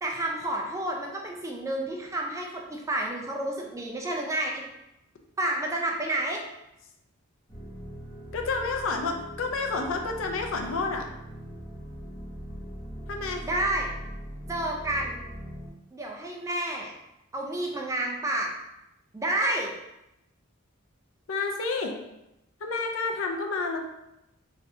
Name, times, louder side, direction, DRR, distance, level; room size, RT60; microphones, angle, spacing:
voice 1, 0.0-4.6 5.4-6.4 13.4-13.9 14.5-15.3 15.9-16.9 17.3-18.5 19.1-19.7, right 1 dB, 15° right, 0 dB, 0.3 m, -30 dB
sound 1, 7.5-15.7, equal, 15° left, 0.8 m, -41 dB
voice 2, 8.3-11.1 13.1-13.4 21.3-21.9 22.6-23.8, left 3 dB, 65° left, 4 dB, 0.4 m, -29 dB
3.3 x 2.6 x 2.6 m, 0.90 s
head